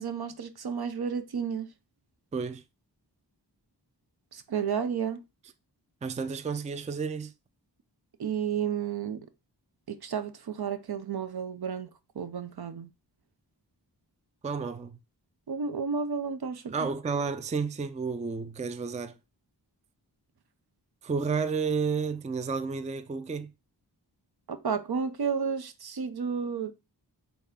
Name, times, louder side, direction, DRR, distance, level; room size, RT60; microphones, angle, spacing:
voice 1, 0.0-1.7 4.3-5.2 8.2-9.3 9.9-11.9 12.2-12.9 15.5-16.7 24.5-26.7, right 6 dB, 60° right, 0.6 m, -32 dB
voice 2, 2.3-2.6 6.0-7.3 14.4-15.0 16.7-19.1 21.0-23.5, right 5 dB, 20° right, 0.4 m, -31 dB
4.1 x 3.4 x 3.5 m
wide cardioid pair, 50°, 43 cm